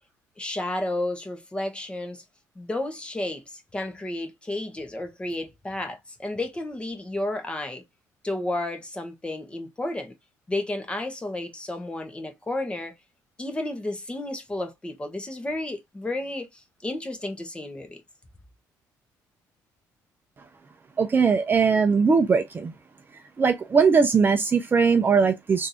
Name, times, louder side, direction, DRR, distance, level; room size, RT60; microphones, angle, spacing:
voice 1, 0.4-2.2 2.5-7.8 8.2-10.1 10.5-12.9 13.4-18.0, left 1 dB, 15° left, 1.2 m, -32 dB
voice 2, 21.0-22.7 23.4-25.7, right 5 dB, 30° right, 0.6 m, -20 dB
3.3 x 2.7 x 4.2 m
cardioid pair, 100°, 7 cm